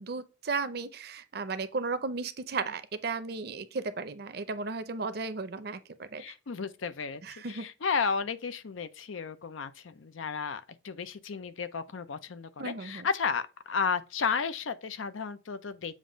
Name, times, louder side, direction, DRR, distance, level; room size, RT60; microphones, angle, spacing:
voice 1, 0.0-6.2 7.2-7.7 12.6-13.1, right 4 dB, 55° right, 0.6 m, -35 dB
voice 2, 6.2-16.0, left 5 dB, 90° left, 0.6 m, -33 dB
7.3 x 2.6 x 5.0 m
head